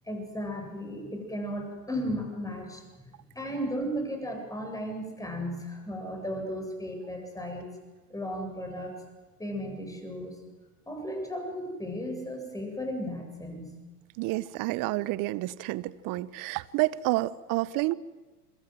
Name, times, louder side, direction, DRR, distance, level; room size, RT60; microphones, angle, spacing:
voice 1, 0.1-7.7 8.1-9.0 9.4-10.4 10.9-13.8, equal, 5° left, 3 dB, 7.9 m, -35 dB
voice 2, 14.2-17.9, right 18 dB, 45° right, 19 dB, 1.1 m, -29 dB
27.0 x 22.5 x 7.9 m, 1.2 s
hypercardioid pair, 90°, 47 cm